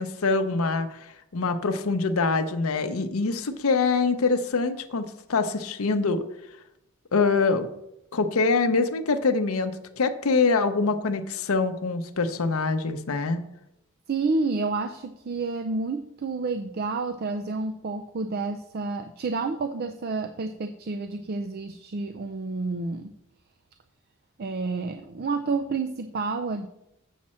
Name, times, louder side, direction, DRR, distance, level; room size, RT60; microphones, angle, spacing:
voice 1, 0.0-6.2 7.1-7.7 8.1-13.4, left 4 dB, 80° left, 9 dB, 0.7 m, -24 dB
voice 2, 14.1-23.1 24.4-26.7, right 3 dB, 45° right, 9 dB, 0.4 m, -29 dB
7.4 x 7.3 x 4.3 m, 0.84 s
head